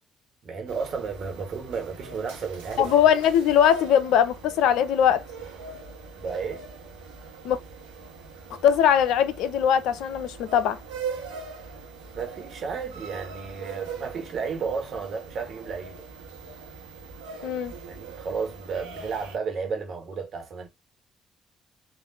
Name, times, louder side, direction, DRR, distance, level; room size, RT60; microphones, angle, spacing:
voice 1, 0.4-3.0 6.2-6.6 12.1-16.0 17.4-20.7, right 5 dB, 55° right, 1.3 m, -33 dB
sound 1, 0.7-19.4, right 5 dB, 85° right, 1.1 m, -41 dB
voice 2, 2.8-5.2 7.4-7.6 8.6-10.8 17.4-17.7, left 9 dB, 70° left, 0.5 m, -21 dB
3.4 x 2.6 x 2.6 m
hypercardioid pair, 45°, 0 cm